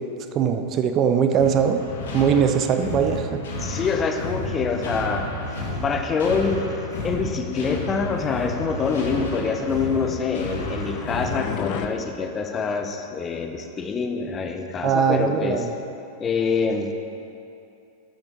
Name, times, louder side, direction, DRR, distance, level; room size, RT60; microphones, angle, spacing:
voice 1, 0.3-1.8 2.1-3.4 14.8-15.7, right 7 dB, 35° right, 7 dB, 0.6 m, -21 dB
Flesh Factory Nightmare, 1.4-12.1, left 1 dB, 60° left, 1.5 m, -32 dB
voice 2, 3.6-5.3 5.8-6.7 7.0-15.7 16.2-16.9, left 5 dB, 25° left, 6 dB, 0.8 m, -25 dB
sound 1, 9.9-11.9, left 12 dB, 40° left, 0.3 m, -34 dB
13.0 x 8.7 x 3.0 m, 2.8 s
figure-of-eight pair, 90°, 0 cm